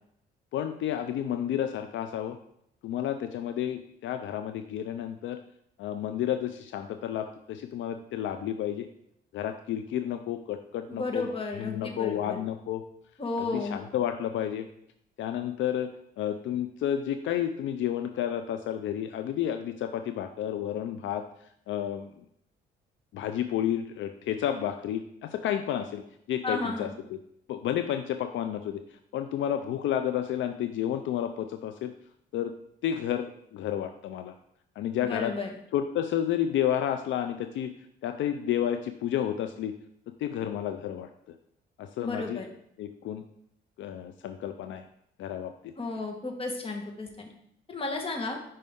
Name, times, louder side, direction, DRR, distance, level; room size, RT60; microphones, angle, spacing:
voice 1, 0.5-2.4 2.8-5.4 5.8-8.9 9.3-11.2 11.6-12.8 13.4-14.7 15.2-15.9 16.2-21.2 21.7-22.1 23.1-26.0 26.3-27.2 27.5-28.8 29.1-31.9 32.3-32.5 32.8-34.3 34.8-35.3 35.7-37.7 38.0-39.7 40.2-41.1 41.8-42.4 42.8-43.2 43.8-44.8 45.2-45.7, left 10 dB, 75° left, 8 dB, 0.4 m, -31 dB
voice 2, 10.9-12.4 13.2-13.8 26.4-26.9 35.0-35.5 42.0-42.5 45.8-47.3 47.7-48.4, left 3 dB, 30° left, 2 dB, 1.3 m, -33 dB
5.5 x 5.2 x 3.6 m, 0.72 s
cardioid pair, 90°, 20 cm